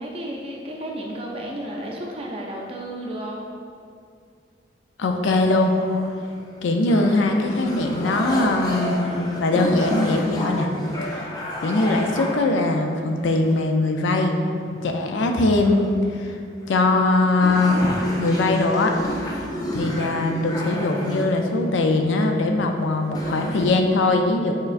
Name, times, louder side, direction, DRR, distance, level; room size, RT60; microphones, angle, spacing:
voice 1, 0.0-3.4, right 1 dB, 30° right, -1 dB, 0.5 m, -32 dB
voice 2, 5.0-5.7 6.6-10.7 11.1-11.3 11.6-14.3 14.7-15.9 16.2-16.3 16.7-17.9 18.2-18.9 19.7-24.5, left 2 dB, 90° left, 4 dB, 0.4 m, -21 dB
sound 1, 5.6-6.4 6.9-12.4 13.2-13.8 14.2-14.3 14.8-16.0 16.6-16.7 17.1-17.2 17.4-21.7 22.6-22.7 23.0-23.7, equal, 20° left, 0.5 m, -31 dB
4.6 x 4.4 x 2.5 m, 2.3 s
head